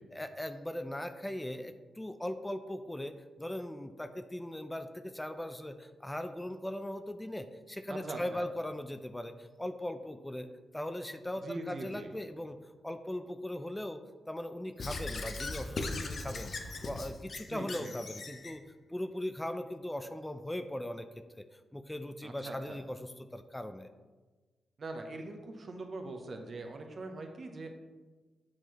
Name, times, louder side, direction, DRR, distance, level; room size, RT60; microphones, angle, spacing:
voice 1, 0.1-10.5 10.7-12.6 12.8-18.6 18.9-21.1 21.3-23.9, left 1 dB, 10° left, 9 dB, 0.4 m, -39 dB
voice 2, 7.9-8.5 11.4-12.1 17.5-17.9 22.2-22.8 24.8-27.7, right 2 dB, 55° right, 4 dB, 0.9 m, -42 dB
Squeak / Writing, 14.8-18.6, left 3 dB, 55° left, 0.7 m, -39 dB
7.4 x 4.5 x 3.0 m, 1.3 s
supercardioid pair, 50°, 0 cm